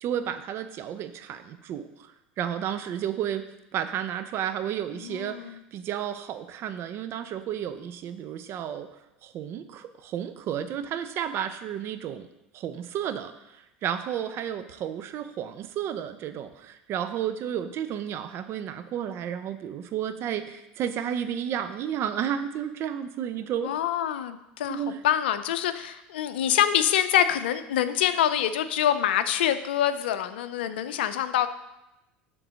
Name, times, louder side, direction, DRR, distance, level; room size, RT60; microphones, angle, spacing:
voice 1, 0.0-8.9 9.2-12.3 12.5-23.7 24.7-25.0, right 9 dB, 50° right, 10 dB, 0.7 m, -32 dB
voice 2, 5.0-5.6 23.6-31.5, left 10 dB, 80° left, 11 dB, 0.5 m, -25 dB
7.8 x 3.8 x 6.3 m, 0.92 s
hypercardioid pair, 85°, 6 cm